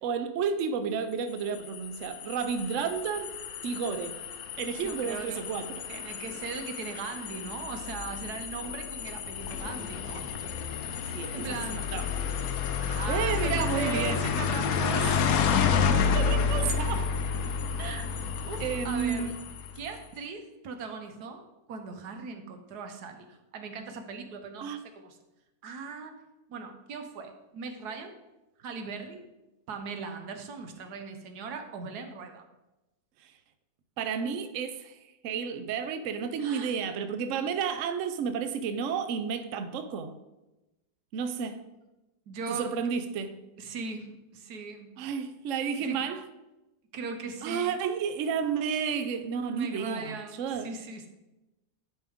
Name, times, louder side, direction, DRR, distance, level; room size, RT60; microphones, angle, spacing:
voice 1, 0.0-3.3 3.6-4.2 4.6-5.9 11.1-12.3 13.1-14.2 15.9-17.1 18.6-19.4 24.6-24.8 33.2-33.3 34.0-40.1 41.1-41.6 42.5-43.4 45.0-46.3 47.4-50.7, right 6 dB, 65° right, 0.9 m, -32 dB
sound 1, 1.4-19.9, left 6 dB, 75° left, 1.0 m, -30 dB
voice 2, 4.8-5.4 5.9-10.3 11.3-12.0 12.8-15.3 17.8-18.1 18.4-19.3 19.8-21.4 21.7-25.2 25.6-26.2 26.5-28.1 28.6-29.2 29.7-32.4 36.4-36.7 42.3-42.7 43.6-45.0 45.8-46.0 46.9-47.8 49.5-51.1, right 4 dB, 85° right, 1.4 m, -39 dB
10.0 x 4.9 x 3.6 m
omnidirectional pair, 1.7 m